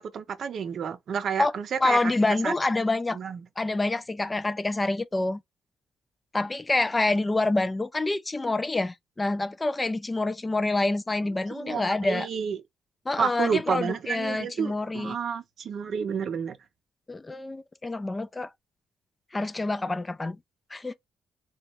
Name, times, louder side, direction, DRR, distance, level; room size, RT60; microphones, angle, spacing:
voice 1, 0.0-2.1 2.4-2.5 3.1-3.4 11.5-12.6 13.2-16.6, right 7 dB, 60° right, 0.6 m, -30 dB
voice 2, 1.8-3.2 3.6-5.4 6.3-12.3 13.1-15.2 17.1-18.5 19.3-20.4 20.7-20.9, left 2 dB, 20° left, 0.3 m, -27 dB
3.0 x 2.3 x 2.9 m
cardioid pair, 90°, 0 cm